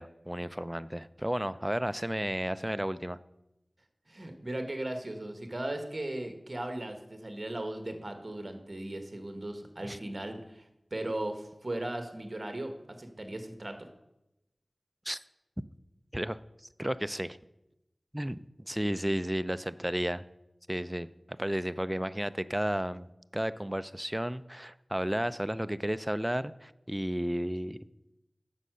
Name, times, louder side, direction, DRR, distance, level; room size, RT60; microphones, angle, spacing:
voice 1, 0.0-3.2 9.8-10.0 15.1-15.2 16.1-16.4 16.8-17.4 18.1-18.4 18.7-20.3 20.7-23.1 23.3-27.8, equal, 10° right, 14 dB, 0.4 m, -33 dB
voice 2, 4.1-12.7 13.0-13.8, right 1 dB, 45° right, 6 dB, 1.5 m, -37 dB
9.6 x 6.7 x 6.3 m, 0.90 s
wide cardioid pair, 45°, 0 cm